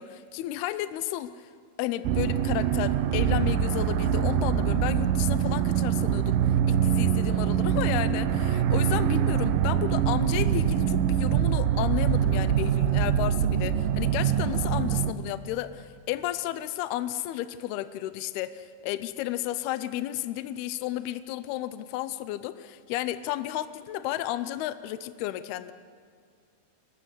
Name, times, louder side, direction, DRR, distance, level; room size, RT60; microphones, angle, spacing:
voice 1, 0.0-1.5 1.8-25.7, left 13 dB, 80° left, 13 dB, 2.6 m, -32 dB
sound 1, 2.0-15.1, right 9 dB, 75° right, 2.3 m, -24 dB
24.5 x 21.5 x 8.0 m, 2.1 s
omnidirectional pair, 4.7 m